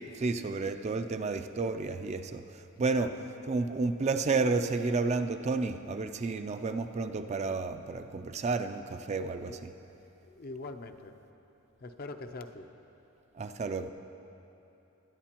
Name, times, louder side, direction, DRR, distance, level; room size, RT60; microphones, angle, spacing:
voice 1, 0.1-3.1 3.5-9.7 13.3-13.9, right 3 dB, 30° right, 8 dB, 0.4 m, -31 dB
voice 2, 2.8-3.4 9.5-9.6 10.2-11.1 11.8-12.7, left 3 dB, 45° left, 7 dB, 0.5 m, -44 dB
21.0 x 10.0 x 2.9 m, 3.0 s
head